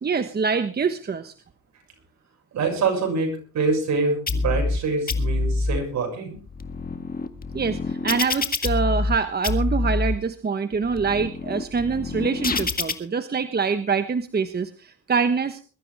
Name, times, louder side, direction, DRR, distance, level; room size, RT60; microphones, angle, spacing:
voice 1, 0.0-1.3 7.5-15.6, right 5 dB, 30° right, 9 dB, 1.2 m, -25 dB
voice 2, 2.5-6.4, right 4 dB, 65° right, 4 dB, 7.1 m, -25 dB
sound 1, 4.3-4.8 5.1-5.8 6.4-9.2 9.4-10.2 10.7-12.9, left 3 dB, 30° left, 1.8 m, -26 dB
22.0 x 13.0 x 3.5 m, 0.36 s
cardioid pair, 90°, 30 cm